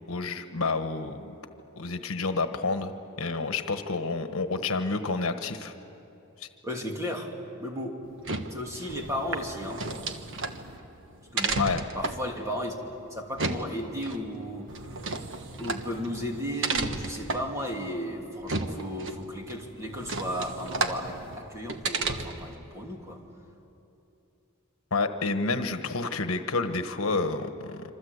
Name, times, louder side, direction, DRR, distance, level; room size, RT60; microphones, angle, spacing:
voice 1, 0.1-1.3 1.8-2.9 3.2-5.7 6.4-6.5 11.6-11.8 24.9-27.8, left 3 dB, 75° left, 8 dB, 1.3 m, -29 dB
voice 2, 6.6-7.3 7.6-8.0 8.5-9.8 11.3-11.6 11.9-12.7 13.1-14.7 15.6-23.2, equal, 15° right, 0 dB, 2.8 m, -34 dB
sound 1, 8.1-22.5, right 3 dB, 60° right, 1.4 m, -34 dB
26.5 x 26.0 x 8.2 m, 2.9 s
head